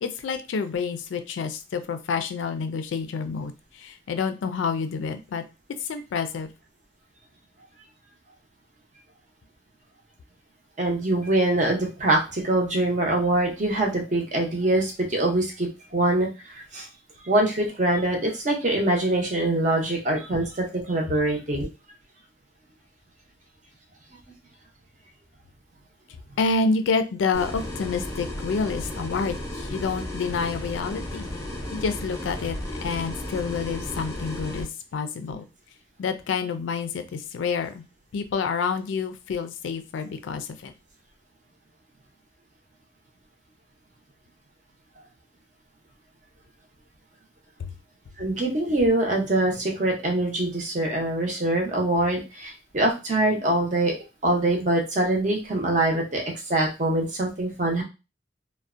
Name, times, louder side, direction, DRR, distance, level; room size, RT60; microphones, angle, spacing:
voice 1, 0.0-5.4 5.8-6.5 26.4-31.3 31.7-32.6 32.8-34.7 34.9-35.5 36.0-37.8 38.1-40.7, left 5 dB, 85° left, 9 dB, 0.3 m, -28 dB
voice 2, 10.8-16.3 16.5-16.9 17.2-21.7 48.2-53.9 54.2-56.2 56.5-57.8, right 1 dB, 40° right, 0 dB, 0.6 m, -24 dB
sound 1, 27.3-34.6, left 1 dB, 15° left, 0.5 m, -34 dB
2.5 x 2.0 x 2.4 m, 0.29 s
head